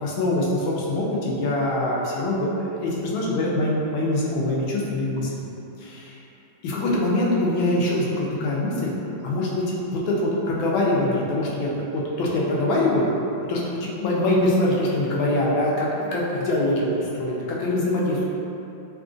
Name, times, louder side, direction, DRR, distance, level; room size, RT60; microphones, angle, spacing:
voice 1, 0.0-5.5 5.8-6.2 6.6-8.9 9.2-9.6 9.9-13.2 13.5-18.2, left 1 dB, 80° left, -4 dB, 1.3 m, -24 dB
3.6 x 2.5 x 2.4 m, 2.9 s
omnidirectional pair, 2.3 m